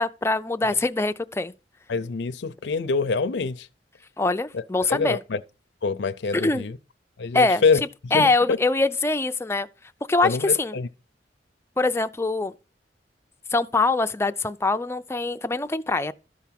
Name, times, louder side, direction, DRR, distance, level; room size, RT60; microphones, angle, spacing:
voice 1, 0.0-1.5 4.2-5.2 6.3-6.7 7.3-7.6 8.1-9.7 10.1-10.7 11.8-12.5 13.5-16.1, left 3 dB, 15° left, 0.4 m, -23 dB
voice 2, 1.9-3.7 4.5-4.6 4.9-5.4 5.8-6.8 7.2-7.8 8.1-8.6 10.2-10.9, left 4 dB, 65° left, 0.5 m, -25 dB
13.0 x 4.7 x 5.8 m
head